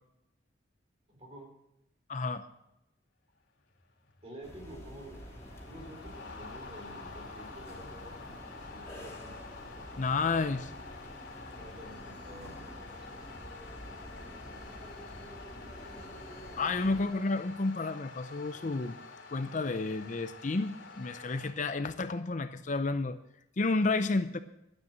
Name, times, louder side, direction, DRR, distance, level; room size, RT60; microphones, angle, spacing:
voice 1, 1.1-1.5 4.2-5.4 5.7-8.3 8.7-9.3 11.6-13.1 13.4-13.6, right 1 dB, 35° right, 1 dB, 3.8 m, -49 dB
voice 2, 2.1-2.5 10.0-10.7 16.6-19.0 19.3-23.2 23.6-24.4, left 3 dB, 40° left, 11 dB, 0.6 m, -31 dB
sound 1, 3.6-21.5, left 4 dB, 85° left, 2.5 m, -49 dB
sound 2, 4.4-17.1, equal, 15° left, 2.8 m, -48 dB
12.0 x 9.0 x 7.2 m, 0.84 s
head